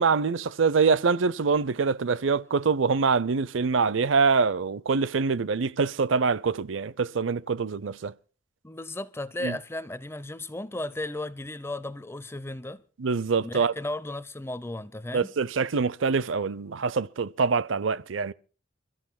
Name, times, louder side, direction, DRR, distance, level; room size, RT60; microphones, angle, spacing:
voice 1, 0.0-8.1 9.4-9.6 13.0-13.7 15.1-18.3, right 5 dB, 80° right, 0.6 m, -25 dB
voice 2, 8.6-12.8 13.4-15.3, left 1 dB, 15° left, 0.6 m, -35 dB
29.0 x 14.0 x 2.2 m
head